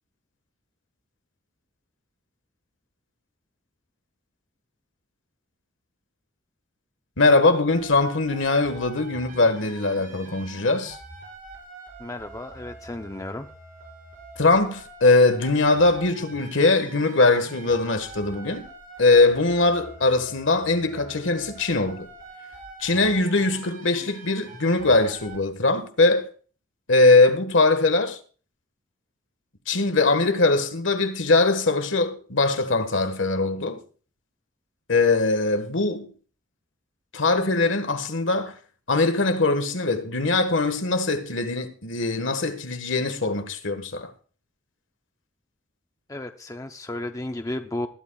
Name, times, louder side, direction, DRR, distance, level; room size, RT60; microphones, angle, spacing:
voice 1, 7.2-11.0 14.4-18.7 19.0-22.1 22.8-26.3 26.9-28.2 29.7-33.8 34.9-36.1 37.1-38.6 38.9-44.1, left 3 dB, 65° left, 1.5 m, -21 dB
sound 1, 7.7-25.4, right 2 dB, 40° right, 5.5 m, -44 dB
voice 2, 12.0-13.5 46.1-47.9, left 1 dB, 15° left, 0.6 m, -33 dB
20.5 x 11.5 x 2.4 m
head